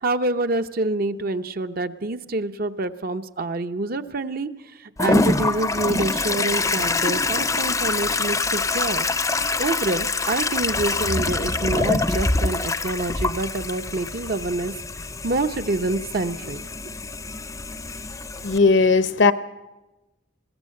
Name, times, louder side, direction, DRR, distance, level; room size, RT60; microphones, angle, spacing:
voice 1, 0.0-9.1 9.6-14.7 15.2-16.6, right 2 dB, 50° right, 0.8 m, -26 dB
Toilet flush, 5.0-18.6, left 3 dB, 15° left, 0.6 m, -25 dB
voice 2, 18.4-19.3, left 4 dB, 65° left, 0.8 m, -17 dB
21.0 x 16.5 x 7.7 m
head